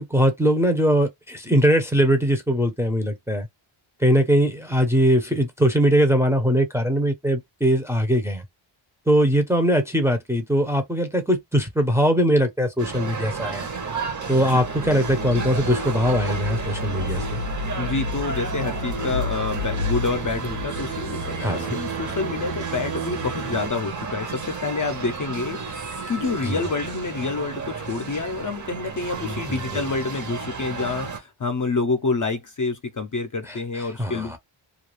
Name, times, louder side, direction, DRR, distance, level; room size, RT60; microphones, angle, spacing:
voice 1, 0.0-3.5 4.0-8.4 9.1-13.7 14.3-17.4 21.4-21.8 26.4-26.6 29.2-29.8 33.5-34.4, equal, 5° right, 0.6 m, -21 dB
sound 1, 12.8-31.2, right 4 dB, 35° right, 0.8 m, -32 dB
voice 2, 14.3-14.6 17.8-34.4, left 3 dB, 40° left, 0.5 m, -28 dB
sound 2, 14.6-23.7, left 2 dB, 85° right, 0.9 m, -31 dB
2.4 x 2.3 x 3.1 m
wide cardioid pair, 135°, 49 cm